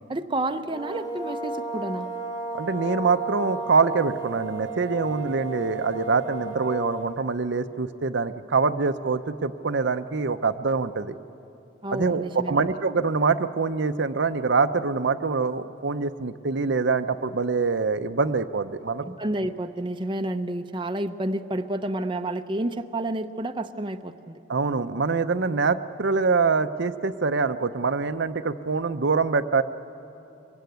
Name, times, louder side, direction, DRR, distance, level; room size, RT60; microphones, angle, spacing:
voice 1, 0.1-2.1 11.8-12.7 19.0-24.4, right 1 dB, 25° right, 7 dB, 0.6 m, -30 dB
sound 1, 0.6-7.3, right 2 dB, 20° left, 1.6 m, -34 dB
voice 2, 2.5-11.2 11.9-19.0 24.5-29.6, right 4 dB, 60° right, 10 dB, 0.7 m, -24 dB
25.0 x 23.0 x 9.3 m, 2.8 s
head